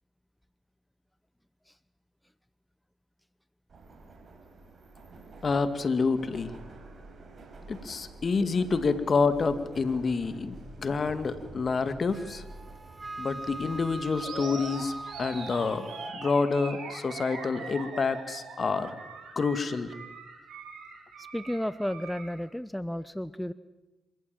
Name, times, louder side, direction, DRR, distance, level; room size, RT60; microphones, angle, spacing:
Subway metro underground, 3.7-15.7, right 2 dB, 55° right, 5.3 m, -49 dB
voice 1, 5.4-6.5 7.7-12.4 13.2-18.9 19.4-19.9, left 4 dB, 50° left, 11 dB, 2.1 m, -28 dB
Wind instrument woodwind instrument, 12.1-16.2, right 2 dB, 30° right, 1.3 m, -41 dB
Animal, 14.2-22.4, right 4 dB, 75° right, 6.4 m, -42 dB
voice 2, 21.2-23.5, equal, 5° left, 15 dB, 0.8 m, -33 dB
26.5 x 15.0 x 9.1 m, 1.1 s
supercardioid pair, 50°, 0 cm